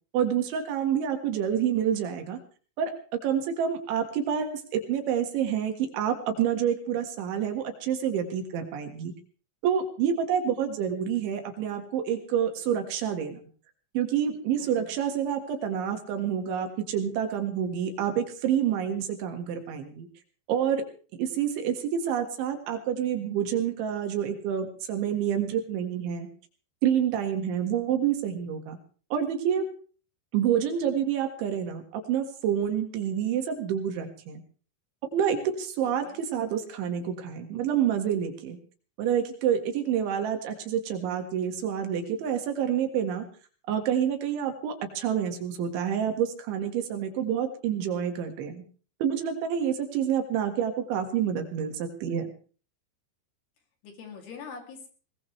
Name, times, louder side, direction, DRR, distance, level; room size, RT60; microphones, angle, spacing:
voice 1, 0.1-2.4 2.8-2.9 3.2-9.1 9.6-13.5 13.9-20.1 20.5-20.8 21.2-26.3 26.8-28.8 29.1-29.6 30.3-34.4 35.1-38.6 39.0-43.3 43.7-48.6 49.0-52.3, right 9 dB, 75° right, 6 dB, 4.2 m, -28 dB
voice 2, 14.6-15.0 35.8-36.2 53.8-54.9, left 5 dB, 60° left, 3 dB, 4.7 m, -44 dB
20.5 x 20.0 x 3.3 m, 0.40 s
omnidirectional pair, 5.6 m